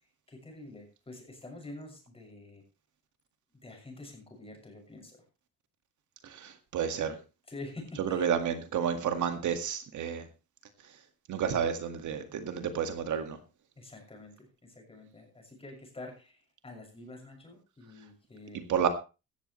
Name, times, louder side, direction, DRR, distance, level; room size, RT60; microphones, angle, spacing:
voice 1, 0.3-2.6 3.6-5.2 7.5-8.3 13.8-18.6, left 2 dB, 15° left, 2 dB, 6.6 m, -47 dB
voice 2, 6.2-7.2 8.0-10.3 11.3-13.4 18.7-18.9, right 8 dB, 60° right, 8 dB, 2.0 m, -30 dB
17.0 x 14.0 x 3.2 m, 0.31 s
cardioid pair, 145°, 34 cm